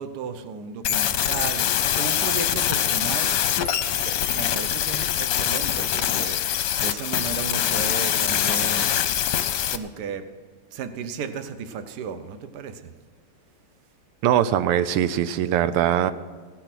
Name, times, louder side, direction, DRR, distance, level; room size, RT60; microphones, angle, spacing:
voice 1, 0.0-3.3 3.9-8.9 9.7-10.3 10.7-12.9, right 5 dB, 55° right, 10 dB, 1.3 m, -34 dB
sound 1, 0.8-9.8, left 10 dB, 65° left, 1.2 m, -24 dB
voice 2, 14.2-16.1, right 11 dB, 90° right, 13 dB, 1.6 m, -21 dB
17.0 x 10.0 x 6.0 m, 1.5 s
omnidirectional pair, 2.4 m